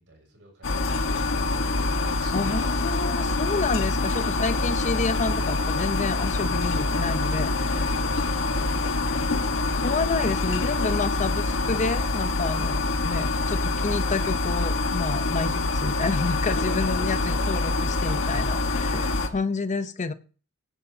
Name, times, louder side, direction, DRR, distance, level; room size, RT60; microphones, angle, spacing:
voice 1, 0.0-2.7 4.1-4.3 7.2-7.3 7.6-9.3 13.2-13.4 16.4-17.3, right 1 dB, 55° right, 1 dB, 6.5 m, -46 dB
sound 1, 0.6-19.3, left 3 dB, 60° left, 1.3 m, -25 dB
voice 2, 2.3-7.5 9.7-20.1, left 4 dB, 35° left, 11 dB, 0.7 m, -29 dB
17.5 x 11.0 x 2.8 m, 0.38 s
head